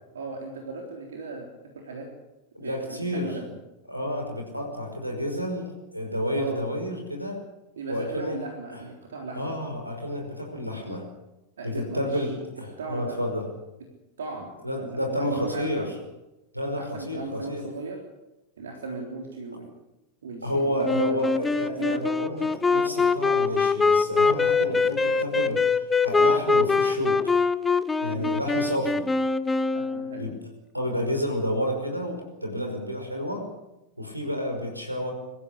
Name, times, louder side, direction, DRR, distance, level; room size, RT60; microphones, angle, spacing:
voice 1, 0.1-1.5 1.8-2.1 2.6-3.5 6.3-6.7 7.8-9.6 11.6-12.2 12.8-13.1 14.2-15.9 16.8-18.0 18.6-19.7 20.2-21.2 21.5-22.0 28.1-28.4 29.7-30.3 32.6-32.8, right 3 dB, 65° right, 1 dB, 3.7 m, -37 dB
voice 2, 2.5-3.4 3.9-7.4 7.9-8.4 8.7-8.8 9.3-11.0 11.6-13.5 14.6-15.9 16.5-17.6 20.4-25.6 26.0-27.3 28.0-29.0 30.2-30.4 30.7-33.5 34.0-35.1, equal, 90° right, 3 dB, 5.3 m, -30 dB
Wind instrument woodwind instrument, 20.8-30.3, left 4 dB, 10° left, 0.8 m, -23 dB
24.5 x 14.5 x 8.5 m, 0.97 s
figure-of-eight pair, 90°, 0 cm